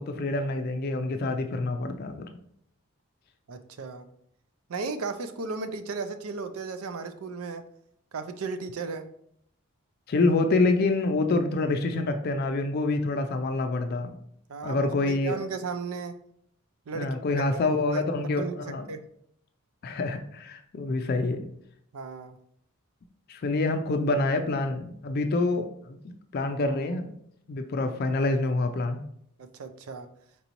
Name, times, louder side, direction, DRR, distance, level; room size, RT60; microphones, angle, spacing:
voice 1, 0.0-2.3 10.1-14.1 14.6-15.4 16.9-18.9 19.8-21.4 23.3-27.1 27.5-29.0, left 2 dB, 45° left, 6 dB, 0.4 m, -27 dB
voice 2, 3.5-4.1 4.7-7.7 8.1-9.1 14.5-16.2 16.9-17.4 17.9-18.0 18.3-19.0 21.9-22.4 29.4-30.1, right 4 dB, 80° right, 9 dB, 0.5 m, -35 dB
4.6 x 3.9 x 2.9 m, 0.69 s
head